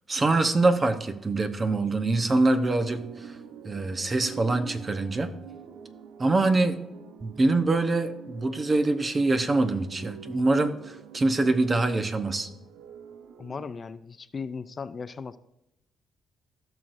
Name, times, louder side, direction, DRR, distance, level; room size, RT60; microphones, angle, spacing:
voice 1, 0.1-3.4 3.6-5.3 6.2-6.8 7.2-12.5, right 2 dB, 30° right, 8 dB, 0.9 m, -24 dB
sound 1, 2.8-13.7, right 8 dB, 90° right, 0.7 m, -46 dB
voice 2, 13.4-15.4, left 5 dB, 40° left, 13 dB, 0.4 m, -37 dB
15.5 x 6.3 x 2.6 m, 0.89 s
cardioid pair, 90°, 0 cm